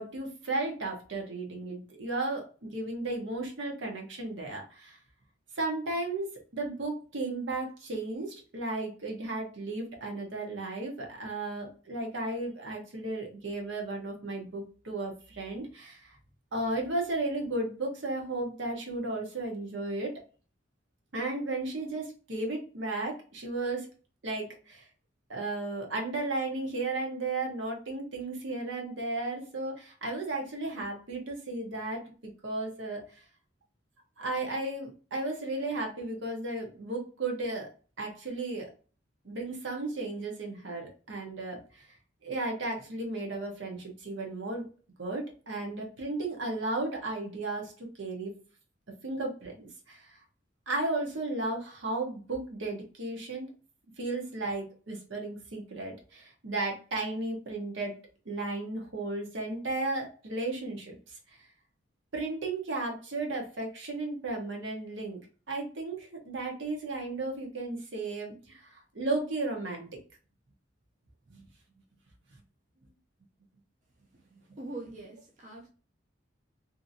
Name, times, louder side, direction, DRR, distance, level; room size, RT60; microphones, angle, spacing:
voice 1, 0.0-5.0 5.6-16.2 16.5-20.1 21.1-23.9 24.2-24.9 25.3-33.0 34.2-37.7 38.0-38.7 39.2-41.9 42.2-44.6 45.0-48.3 49.0-50.2 50.7-53.5 54.0-58.0 58.2-61.2 62.1-65.2 65.5-69.9 71.3-71.5, right 2 dB, 75° right, 0.9 m, -34 dB
voice 2, 74.6-75.7, right 2 dB, 40° right, 0.5 m, -42 dB
2.7 x 2.5 x 2.6 m
head